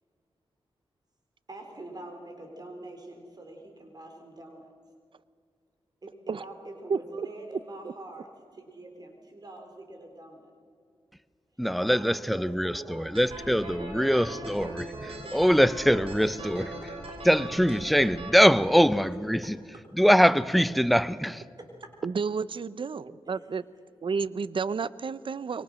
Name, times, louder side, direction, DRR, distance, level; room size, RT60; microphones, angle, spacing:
voice 1, 1.5-4.7 6.0-10.5 11.5-13.2 13.8-14.6 15.2-15.3 16.6-17.2 19.4-19.8 21.6-22.0 23.3-23.6, right 2 dB, 40° right, 3.8 m, -45 dB
voice 2, 11.6-14.9 15.3-16.7 17.2-19.6 19.9-21.4, equal, ahead, 0.7 m, -23 dB
sound 1, 13.1-18.3, right 2 dB, 75° right, 5.5 m, -40 dB
voice 3, 22.0-23.6 24.0-25.6, right 5 dB, 60° right, 0.7 m, -30 dB
26.5 x 23.0 x 6.4 m
cardioid pair, 70°, 10 cm